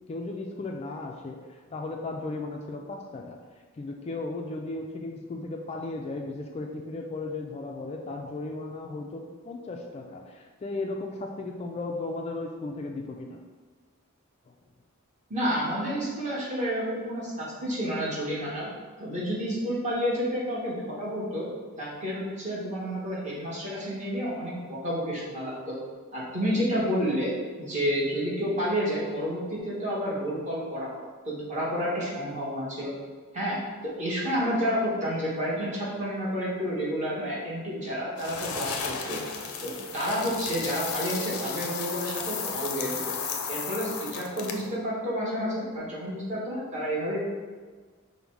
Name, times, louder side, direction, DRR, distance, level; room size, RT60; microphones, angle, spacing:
voice 1, 0.1-3.4 3.7-13.4 14.5-14.6, left 2 dB, 30° left, 1 dB, 0.3 m, -36 dB
voice 2, 15.3-18.7 19.0-21.5 21.8-25.8 26.1-27.3 27.6-32.9 33.3-33.6 33.8-39.2 39.6-43.1 43.5-47.2, equal, 35° right, -6 dB, 1.3 m, -30 dB
sound 1, 38.2-44.7, left 6 dB, 80° left, 0.5 m, -34 dB
5.3 x 2.1 x 4.6 m, 1.5 s
head